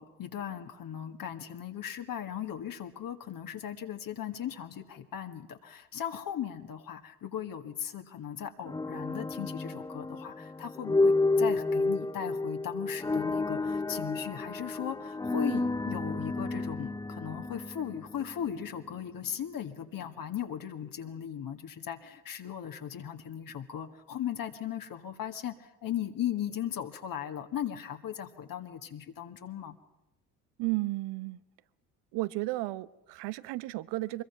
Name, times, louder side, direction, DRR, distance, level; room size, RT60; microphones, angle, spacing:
voice 1, 0.0-29.8, left 9 dB, 50° left, 5 dB, 1.8 m, -37 dB
sound 1, 8.7-18.7, left 2 dB, 10° left, 0.7 m, -31 dB
voice 2, 30.6-31.4 32.1-34.2, right 20 dB, 65° right, 18 dB, 1.0 m, -33 dB
24.0 x 22.0 x 5.9 m, 0.94 s
hypercardioid pair, 60°, 45 cm